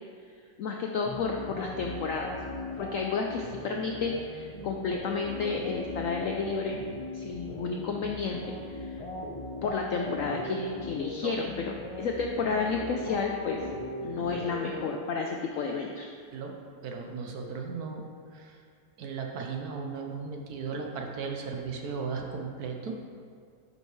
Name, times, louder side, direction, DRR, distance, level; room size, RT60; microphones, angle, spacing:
voice 1, 0.6-2.3 2.8-6.8 7.1-8.4 8.7-9.0 9.6-13.6 14.0-16.1, left 4 dB, 75° left, 2 dB, 0.7 m, -31 dB
sound 1, 1.1-15.4, left 2 dB, 35° left, 0.5 m, -39 dB
voice 2, 16.8-18.0 18.3-18.6 19.0-22.9, right 5 dB, 65° right, 2 dB, 1.2 m, -36 dB
10.5 x 5.5 x 3.1 m, 2.1 s
omnidirectional pair, 1.9 m